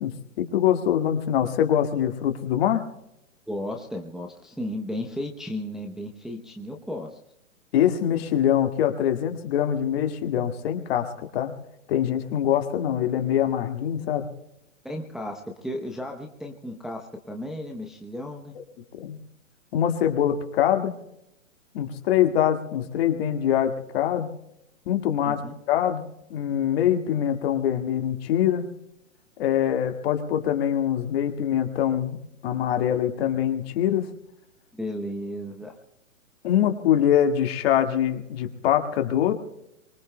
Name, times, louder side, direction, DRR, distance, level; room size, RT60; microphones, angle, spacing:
voice 1, 0.0-2.8 7.7-11.5 11.9-14.3 19.0-19.2 19.7-21.0 21.7-24.3 24.9-25.4 25.7-26.1 26.3-28.7 29.4-32.2 32.4-34.1 36.4-39.3, left 10 dB, 45° left, 6 dB, 2.0 m, -24 dB
voice 2, 3.5-7.2 14.8-18.5 25.2-25.5 34.7-35.7, left 1 dB, ahead, 0 dB, 0.7 m, -34 dB
24.0 x 23.0 x 2.2 m, 0.84 s
hypercardioid pair, 130°, 40 cm